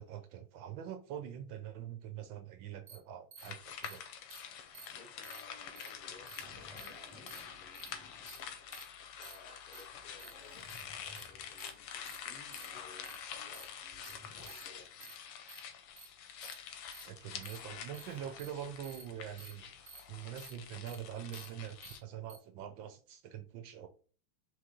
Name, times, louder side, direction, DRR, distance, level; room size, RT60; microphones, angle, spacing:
voice 1, 0.0-4.0 17.0-19.8 20.1-23.9, right 10 dB, 75° right, 1.2 m, -44 dB
sound 1, 2.9-3.0 3.3-3.5 3.8-4.0 4.3-4.4 4.7-4.9 5.2-5.4 5.8-5.9 6.3-6.4 6.8-6.9 7.3-7.4 7.8-7.9 8.3-8.4 8.7-8.8 9.2-9.4 9.7-9.8 10.2-10.3 10.7-10.8 11.2-11.3 11.6-11.7 12.1-12.2 12.5-12.7 13.1-13.2 13.5-13.7 14.0-14.1 14.5-14.6 15.0-15.1 15.5-15.6 16.0-16.1 16.4-16.6 16.9-17.0 17.4-17.6 17.9-18.0 18.4-18.5 18.8-19.0 19.4-19.5 19.9-20.0 20.4-20.5 20.9-21.0 21.3-21.5 21.8-21.9 22.3-22.4, right 6 dB, 55° right, 1.1 m, -51 dB
sound 2, 3.4-22.0, left 8 dB, 85° left, 1.6 m, -47 dB
voice 2, 4.9-8.5 8.9-10.7 11.3-15.1, left 4 dB, 70° left, 0.9 m, -60 dB
Zipper (clothing), 5.9-8.8 9.2-9.3 9.8-11.7 12.5-12.6 13.5-15.1 17.5-18.4 19.8-20.3, left 1 dB, 5° right, 0.7 m, -58 dB
4.3 x 3.1 x 3.6 m
omnidirectional pair, 2.4 m